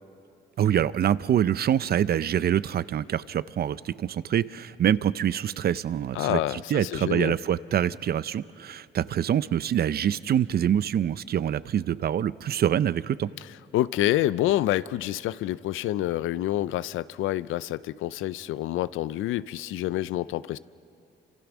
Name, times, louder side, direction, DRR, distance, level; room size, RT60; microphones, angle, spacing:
voice 1, 0.6-13.3, right 10 dB, 50° right, 17 dB, 0.6 m, -25 dB
voice 2, 6.1-7.4 13.7-20.6, left 14 dB, 85° left, 17 dB, 0.5 m, -27 dB
27.5 x 26.0 x 6.1 m, 2.6 s
cardioid pair, 90°, 20 cm